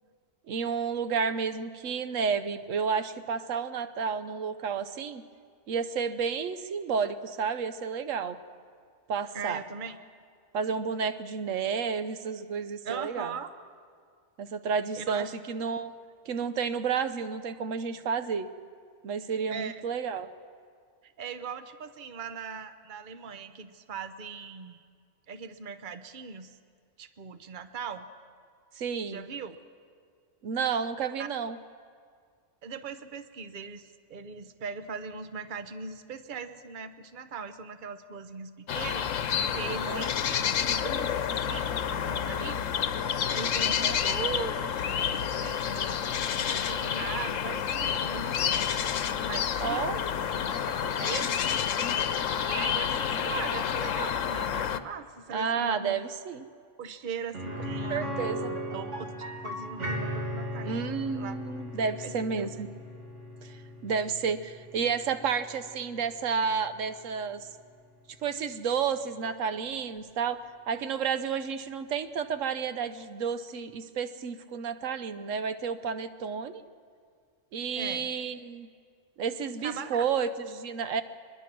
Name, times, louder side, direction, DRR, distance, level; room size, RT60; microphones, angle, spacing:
voice 1, 0.5-5.2 5.7-8.4 9.1-9.6 10.5-13.3 14.4-15.9 16.3-18.5 19.0-20.3 28.8-29.2 30.4-31.6 39.9-40.0 43.6-44.0 49.6-50.0 55.3-56.4 57.9-58.5 60.6-62.7 63.4-67.5 68.2-76.6 77.5-78.7 79.2-81.0, right 6 dB, 90° right, 11 dB, 1.2 m, -31 dB
voice 2, 9.3-10.0 12.8-13.5 14.9-15.3 19.5-19.8 21.0-24.8 25.3-26.5 27.0-28.1 29.1-29.6 31.2-31.3 32.6-41.7 42.0-42.7 43.3-48.7 49.2-50.1 50.6-51.4 52.4-56.0 56.8-61.4 62.0-62.5 77.7-78.1 79.6-80.0, right 6 dB, 45° right, 10 dB, 1.0 m, -40 dB
sound 1, 38.7-54.8, left 8 dB, 85° left, 1.2 m, -29 dB
sound 2, 57.3-67.1 67.4-67.5 70.0-70.1, equal, 70° right, 2.6 m, -37 dB
23.5 x 21.5 x 6.1 m, 2.1 s
omnidirectional pair, 1.3 m